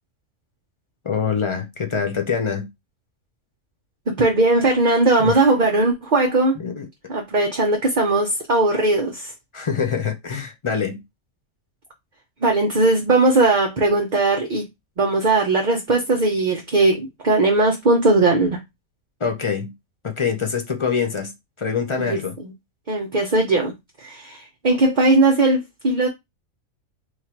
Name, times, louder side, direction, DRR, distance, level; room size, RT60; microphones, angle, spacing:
voice 1, 1.0-2.7 5.2-5.4 6.6-6.9 9.5-11.0 19.2-19.7 20.0-21.3 21.6-22.4, left 6 dB, 45° left, 0.4 m, -24 dB
voice 2, 4.1-6.6 7.1-9.3 12.4-14.7 15.0-18.6 22.0-22.5 22.9-23.7 24.0-26.1, right 2 dB, 45° right, 0.7 m, -19 dB
3.2 x 2.5 x 4.3 m
omnidirectional pair, 1.4 m